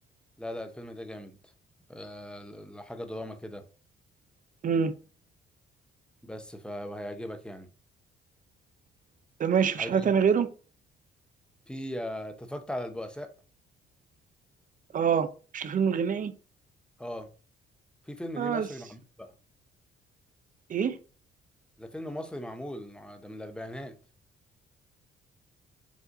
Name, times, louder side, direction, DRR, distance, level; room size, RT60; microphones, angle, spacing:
voice 1, 0.4-1.4 1.9-3.6 6.2-7.7 9.8-10.1 11.7-13.3 17.0-17.3 18.1-19.3 21.8-24.0, left 1 dB, 5° left, 0.7 m, -39 dB
voice 2, 9.4-10.5 14.9-15.3 15.5-16.3 18.4-18.7 20.7-21.0, right 7 dB, 40° right, 0.6 m, -25 dB
5.1 x 2.5 x 3.8 m
cardioid pair, 90°, 20 cm